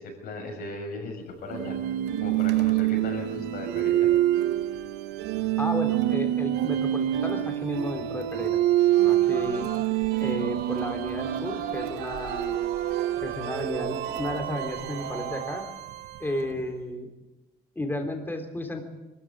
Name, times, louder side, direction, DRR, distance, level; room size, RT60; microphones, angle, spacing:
voice 1, 0.0-1.8 2.2-4.1, left 2 dB, 65° left, 2 dB, 6.3 m, -37 dB
sound 1, 1.5-16.6, right 13 dB, 85° right, 1.1 m, -27 dB
voice 2, 5.6-8.6 9.0-9.7 10.2-12.6 13.2-15.6 16.2-17.1 17.7-18.8, left 1 dB, 10° left, 4 dB, 3.3 m, -33 dB
Singing, 9.2-15.6, right 9 dB, 60° right, 1.3 m, -37 dB
22.5 x 14.0 x 9.9 m, 1.1 s
cardioid pair, 110°, 17 cm